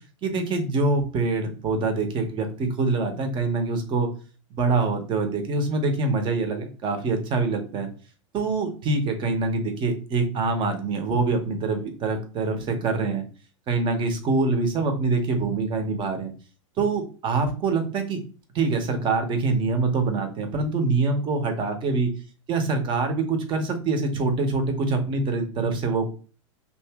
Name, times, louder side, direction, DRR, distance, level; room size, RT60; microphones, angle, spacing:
voice 1, 0.2-4.1 4.5-7.9 8.3-13.3 13.7-16.3 16.8-18.2 18.5-22.1 22.5-26.1, right 3 dB, 30° right, 6 dB, 0.9 m, -25 dB
2.9 x 2.6 x 3.5 m, 0.36 s
hypercardioid pair, 125°, 17 cm